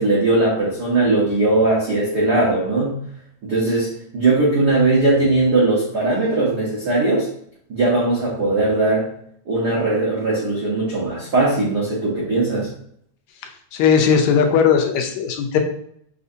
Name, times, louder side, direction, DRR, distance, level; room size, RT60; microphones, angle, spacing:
voice 1, 0.0-3.0 3.4-7.3 7.7-9.1 9.5-12.7, right 2 dB, 75° right, -6 dB, 0.9 m, -19 dB
voice 2, 13.7-15.6, left 7 dB, 85° left, 4 dB, 1.9 m, -17 dB
6.1 x 2.7 x 2.6 m, 0.67 s
omnidirectional pair, 3.3 m